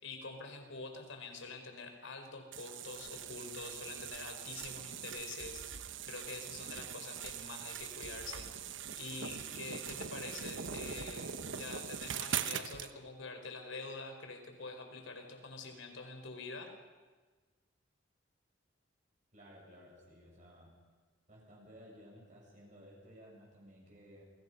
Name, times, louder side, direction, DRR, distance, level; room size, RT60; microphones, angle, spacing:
voice 1, 0.0-5.6 6.0-8.5 9.0-16.7, left 3 dB, 75° left, 5 dB, 4.4 m, -46 dB
sound 1, 2.5-12.9, right 8 dB, 70° right, 1.1 m, -42 dB
voice 2, 19.3-20.8 21.3-24.2, equal, 35° right, -3 dB, 7.2 m, -56 dB
28.5 x 24.0 x 5.5 m, 1.4 s
head